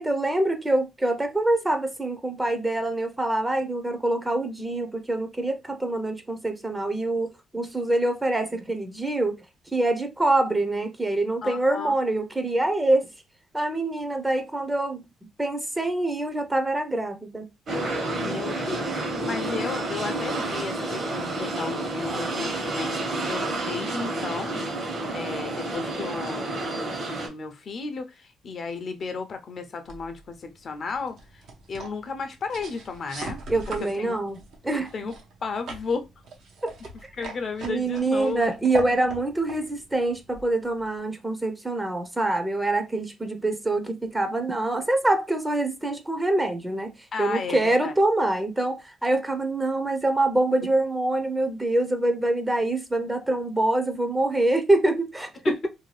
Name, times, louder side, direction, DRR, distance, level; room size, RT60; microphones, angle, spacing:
voice 1, 0.0-9.3 9.7-13.1 13.5-15.0 15.4-17.5 33.5-34.9 36.6-36.7 37.0-37.1 37.6-55.7, right 2 dB, 15° right, 0.5 m, -25 dB
voice 2, 11.4-11.9 18.1-31.4 31.7-33.4 33.8-34.2 34.9-35.1 35.4-36.0 37.1-38.5 47.1-48.0 55.4-55.6, left 4 dB, 50° left, 0.5 m, -34 dB
sound 1, 17.7-27.3, right 2 dB, 55° right, 1.1 m, -30 dB
sound 2, 29.8-41.0, right 3 dB, 75° right, 0.7 m, -41 dB
2.6 x 2.3 x 3.0 m
cardioid pair, 90°, 0 cm